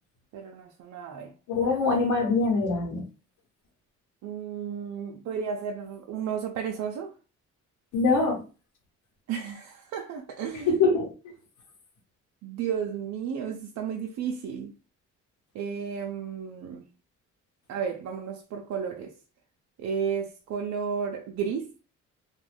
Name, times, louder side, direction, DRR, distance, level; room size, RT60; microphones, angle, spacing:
voice 1, 0.3-1.3 4.2-7.1 9.3-10.7 12.4-14.7 15.5-16.9 17.7-19.1 19.8-21.7, right 7 dB, 65° right, 0.5 m, -33 dB
voice 2, 1.5-3.0 7.9-8.4 10.7-11.1, left 3 dB, 80° left, 1.2 m, -23 dB
2.5 x 2.2 x 3.3 m
cardioid pair, 90°, 30 cm